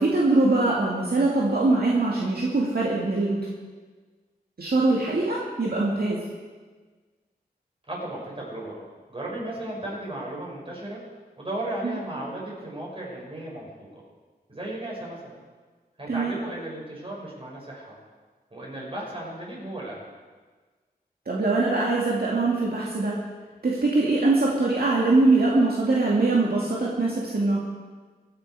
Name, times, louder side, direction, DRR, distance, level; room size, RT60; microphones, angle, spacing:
voice 1, 0.0-3.4 4.6-6.2 11.8-12.0 16.1-16.4 21.3-23.1 23.6-27.6, right 2 dB, 70° right, -4 dB, 2.4 m, -22 dB
voice 2, 7.9-11.0 11.4-14.0 14.5-15.4 16.0-18.0 18.5-20.1, right 1 dB, 35° right, -4 dB, 6.5 m, -35 dB
23.5 x 10.5 x 4.9 m, 1.4 s
wide cardioid pair, 90°, 17 cm